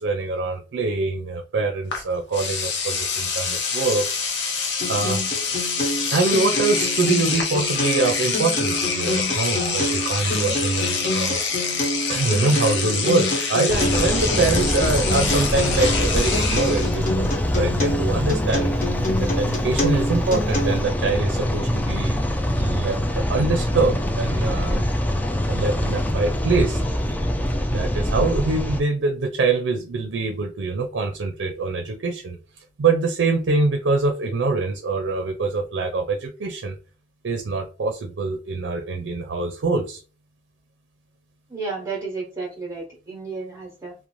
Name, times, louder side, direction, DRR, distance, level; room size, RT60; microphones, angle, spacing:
voice 1, 0.0-4.2 4.9-5.2 6.1-11.4 12.1-18.7 19.2-22.2 22.6-24.9 25.5-26.8 27.7-32.4 32.8-36.8 37.2-40.0, right 3 dB, 90° right, 4 dB, 0.4 m, -24 dB
Engine / Domestic sounds home sounds, 1.9-2.0 2.3-17.0, left 5 dB, 75° left, 0.7 m, -26 dB
Acoustic guitar, 4.8-20.8, left 1 dB, 45° left, 1.1 m, -27 dB
sound 1, 13.7-28.8, left 1 dB, 10° left, 0.3 m, -24 dB
voice 2, 41.5-43.9, right 4 dB, 20° right, -3 dB, 0.7 m, -32 dB
2.5 x 2.1 x 3.0 m, 0.34 s
head